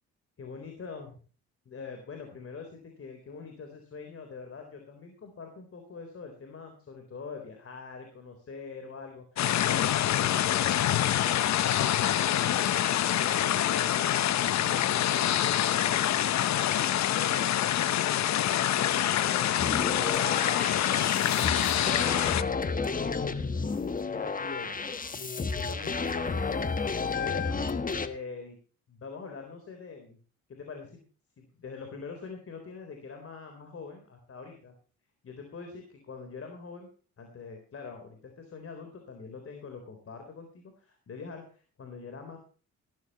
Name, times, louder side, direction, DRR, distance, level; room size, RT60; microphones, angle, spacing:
voice 1, 0.4-1.1 1.7-19.7 20.0-21.6 21.8-23.6 24.0-26.9 27.1-27.7 28.0-28.6 28.9-30.2 30.5-31.0 31.4-34.7 35.2-36.9 37.2-42.4, left 5 dB, 50° left, 5 dB, 3.8 m, -44 dB
sound 1, 9.4-22.4, left 11 dB, 65° left, 0.9 m, -26 dB
sound 2, 19.6-28.1, left 4 dB, 30° left, 1.3 m, -31 dB
15.0 x 13.5 x 3.0 m, 0.39 s
cardioid pair, 90°, 30 cm